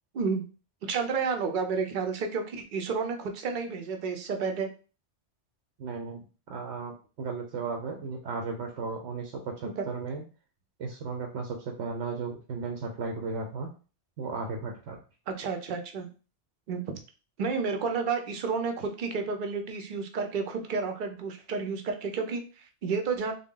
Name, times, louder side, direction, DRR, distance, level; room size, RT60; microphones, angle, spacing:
voice 1, 0.1-0.5 0.8-4.7 9.6-9.8 15.3-16.1 16.7-16.9 17.4-23.3, right 5 dB, 55° right, 4 dB, 0.7 m, -31 dB
voice 2, 5.8-6.2 6.5-10.2 10.8-13.7 14.2-15.0, right 4 dB, 80° right, 1 dB, 1.0 m, -35 dB
3.6 x 2.2 x 3.7 m, 0.36 s
omnidirectional pair, 1.1 m